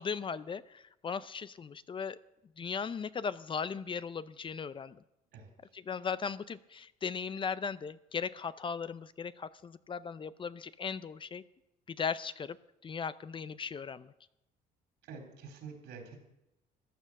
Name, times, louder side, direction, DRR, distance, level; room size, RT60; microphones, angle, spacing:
voice 1, 0.0-2.2 2.6-5.0 5.7-11.4 11.9-12.6 12.8-14.1, left 6 dB, 30° left, 16 dB, 0.5 m, -37 dB
voice 2, 15.1-16.2, right 5 dB, 85° right, 2 dB, 4.2 m, -47 dB
15.0 x 10.0 x 6.4 m, 0.89 s
cardioid pair, 110°, 17 cm